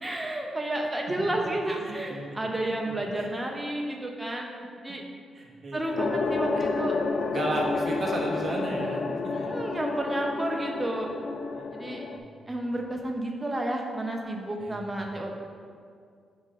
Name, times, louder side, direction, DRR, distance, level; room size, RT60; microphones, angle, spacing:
voice 1, 0.0-4.6 4.8-5.0 5.7-7.0 9.3-11.1 11.7-12.0 12.5-15.3, right 1 dB, 10° right, 0 dB, 0.6 m, -31 dB
voice 2, 1.8-2.3 2.9-3.3 4.5-4.7 5.3-6.0 7.3-9.5 11.6-11.7 14.6-14.8, right 2 dB, 30° right, -3 dB, 1.0 m, -34 dB
sound 1, 6.0-12.2, left 4 dB, 45° left, 0.3 m, -30 dB
5.1 x 3.8 x 5.6 m, 2.2 s
wide cardioid pair, 170°, 0 cm